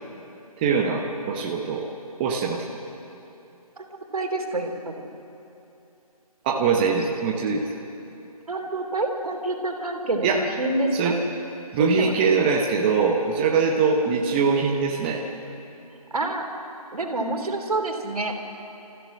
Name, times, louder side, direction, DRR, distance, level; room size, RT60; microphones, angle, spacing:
voice 1, 0.6-1.9 2.2-2.6 6.4-7.7 10.2-10.4 10.9-11.2 11.7-15.2, right 5 dB, 15° right, 0 dB, 0.9 m, -22 dB
voice 2, 3.8-5.1 8.5-11.2 11.8-12.2 14.0-14.2 16.1-16.5 16.9-18.3, right 2 dB, 70° right, 3 dB, 3.1 m, -28 dB
29.5 x 14.5 x 6.4 m, 2.9 s
figure-of-eight pair, 160°, 19 cm